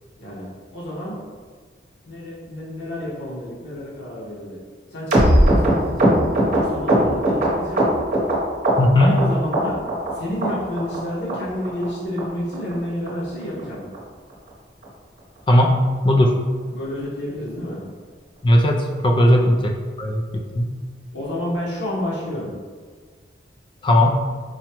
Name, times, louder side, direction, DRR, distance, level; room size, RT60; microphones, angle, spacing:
voice 1, 0.7-1.2 2.0-4.6 4.9-6.2 6.5-7.8 9.0-9.8 10.1-13.8 16.7-17.8 19.2-19.4 21.1-22.5, left 1 dB, 65° left, -7 dB, 1.0 m, -29 dB
sound 1, 5.1-8.4 8.6-9.2 9.5-10.1 10.4-10.5 10.8-11.0 11.3-11.4 11.7-11.9 12.2-12.3 12.5-12.7 13.1-13.2 13.4-13.6 13.9-14.0 14.3-14.5 14.8-14.9, right 1 dB, 40° right, 0.9 m, -18 dB
voice 2, 8.8-9.2 15.5-15.8 16.0-16.4 18.4-19.7 20.0-20.2 20.6-20.7 23.8-24.1, left 1 dB, 25° left, 1 dB, 0.3 m, -16 dB
4.9 x 2.2 x 2.9 m, 1.5 s
head